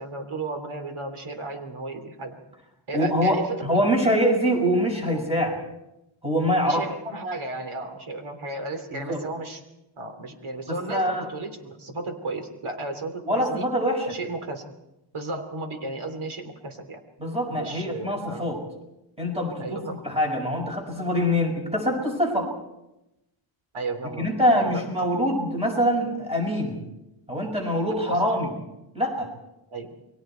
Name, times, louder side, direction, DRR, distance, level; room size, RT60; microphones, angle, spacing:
voice 1, 0.0-2.4 2.9-3.8 6.6-9.6 10.0-13.7 14.1-14.7 15.1-17.0 17.5-18.4 19.6-20.1 23.7-24.3 24.5-24.9 28.0-28.3 29.7-29.9, right 2 dB, 80° right, 6 dB, 3.2 m, -34 dB
voice 2, 2.9-5.6 6.2-6.8 8.9-9.2 10.7-11.3 13.2-14.2 17.2-18.6 19.2-22.5 24.2-26.8 27.3-28.5 28.9-29.3, equal, 10° right, 1 dB, 6.3 m, -24 dB
29.5 x 23.0 x 4.5 m, 0.91 s
wide cardioid pair, 140°, 48 cm